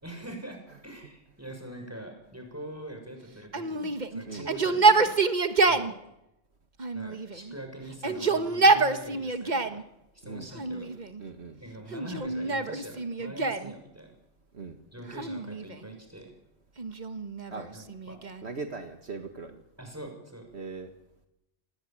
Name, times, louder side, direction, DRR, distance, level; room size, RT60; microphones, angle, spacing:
voice 1, 0.0-5.2 5.6-6.0 6.9-9.8 10.1-10.9 11.6-14.1 14.9-16.3 17.7-18.2 19.8-20.5, right 1 dB, 10° right, 4 dB, 6.5 m, -43 dB
Yell, 3.5-5.9 6.8-7.5 7.9-9.8 10.5-11.2 11.9-13.7 15.1-15.9 16.8-18.5, right 3 dB, 40° right, 1.5 m, -26 dB
voice 2, 11.2-11.6 14.5-14.8 17.5-17.7 18.4-19.6 20.5-20.9, right 4 dB, 60° right, 6 dB, 2.0 m, -39 dB
27.5 x 19.5 x 9.0 m, 0.89 s
omnidirectional pair, 1.2 m